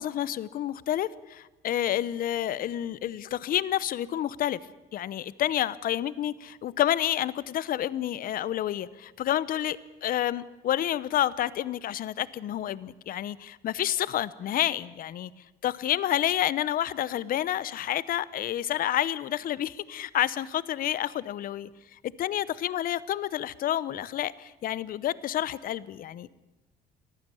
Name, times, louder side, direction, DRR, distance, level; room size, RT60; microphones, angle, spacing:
voice 1, 0.0-4.6 4.9-15.3 15.6-26.3, left 12 dB, 55° left, 19 dB, 0.8 m, -29 dB
22.5 x 15.0 x 8.4 m, 1.1 s
cardioid pair, 110°, 17 cm